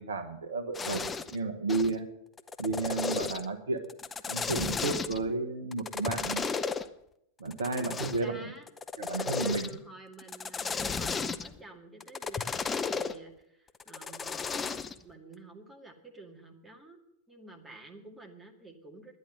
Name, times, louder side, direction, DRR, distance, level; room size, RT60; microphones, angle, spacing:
voice 1, 0.0-2.1 2.6-3.8 4.3-6.5 7.4-8.4 9.0-9.7, right 3 dB, 65° right, 7 dB, 1.1 m, -32 dB
sound 1, 0.7-1.4 1.7-1.9 2.4-3.5 3.9-5.3 5.7-6.8 7.5-8.3 8.7-9.8 10.2-11.6 12.0-13.1 13.8-15.0, left 5 dB, 20° left, 0.7 m, -34 dB
voice 2, 8.0-8.7 9.2-17.0 17.3-19.2, right 2 dB, 10° right, 1 dB, 2.1 m, -50 dB
10.5 x 10.0 x 7.9 m, 0.77 s
figure-of-eight pair, 90°, 0 cm